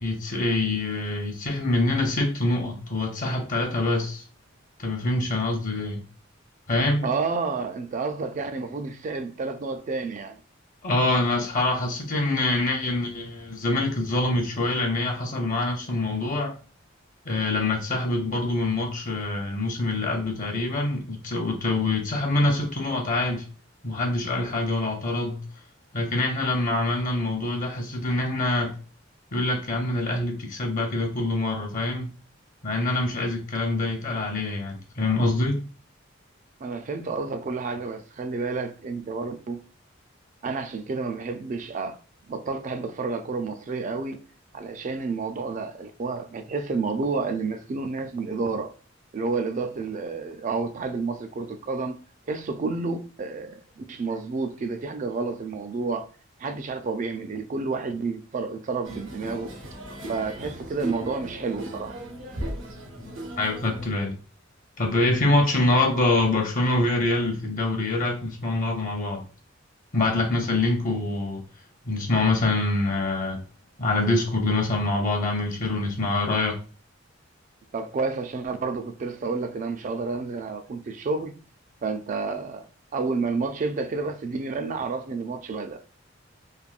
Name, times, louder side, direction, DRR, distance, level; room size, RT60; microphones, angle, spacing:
voice 1, 0.0-4.2 4.8-6.0 6.7-7.1 10.8-16.6 17.3-23.4 23.8-25.4 25.9-28.7 29.3-32.1 32.6-35.6 63.0-63.1 63.4-64.2 64.8-69.2 69.9-71.4 71.8-73.4 73.8-76.5, left 2 dB, 45° left, 0.7 m, -25 dB
voice 2, 7.0-10.4 36.6-39.6 40.4-42.0 42.3-44.2 44.5-48.7 49.1-56.1 56.4-59.5 60.1-62.0 77.7-81.4 81.8-82.7 82.9-85.8, right 4 dB, 40° right, 0.3 m, -30 dB
sound 1, 58.8-63.9, right 1 dB, 75° right, 0.7 m, -37 dB
3.3 x 2.1 x 2.4 m
head